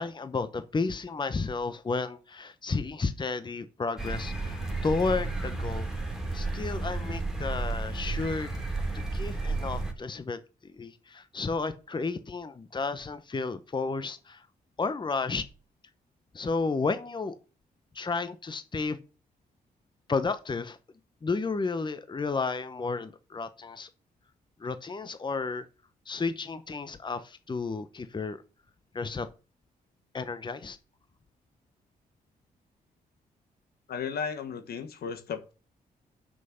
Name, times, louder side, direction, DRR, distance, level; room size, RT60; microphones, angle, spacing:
voice 1, 0.0-5.9 6.3-8.5 9.1-10.4 10.7-14.4 14.8-15.5 16.3-17.3 17.9-19.0 20.1-20.8 21.2-23.9 24.6-25.7 26.1-28.4 28.9-29.3 30.1-30.8, left 4 dB, 30° left, 0.9 m, -32 dB
sound 1, 4.0-9.9, right 3 dB, 5° right, 2.6 m, -32 dB
voice 2, 33.9-35.5, left 6 dB, 75° left, 1.3 m, -35 dB
6.2 x 5.5 x 6.8 m
cardioid pair, 70°, 16 cm